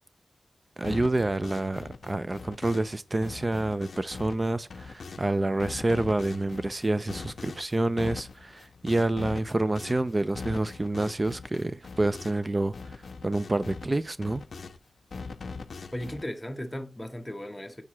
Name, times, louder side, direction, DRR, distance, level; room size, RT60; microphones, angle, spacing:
sound 1, 0.8-3.0 3.2-5.3 5.6-12.5 12.7-14.8 15.1-16.2, left 4 dB, 75° left, 0.5 m, -41 dB
voice 1, 0.8-13.0 13.2-14.4, right 2 dB, 30° right, 0.5 m, -28 dB
voice 2, 15.9-17.8, left 1 dB, 15° left, 0.9 m, -36 dB
4.8 x 4.7 x 4.2 m
wide cardioid pair, 90°, 0 cm